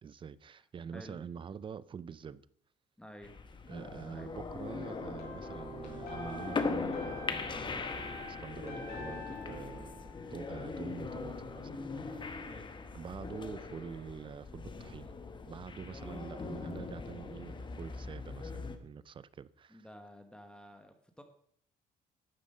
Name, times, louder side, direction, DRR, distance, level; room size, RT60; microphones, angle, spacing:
voice 1, 0.0-2.5 3.7-9.9 10.3-12.5 12.9-15.2 15.5-19.9, right 7 dB, 30° right, 0.5 m, -46 dB
voice 2, 3.0-3.3 4.0-4.3 12.4-12.8 16.0-16.3 19.7-21.2, equal, 5° left, 1.0 m, -52 dB
sound 1, 3.2-18.8, left 4 dB, 30° left, 1.1 m, -40 dB
sound 2, 4.8-10.8, left 1 dB, 65° left, 4.1 m, -47 dB
12.0 x 7.1 x 5.4 m
cardioid pair, 110°, 17 cm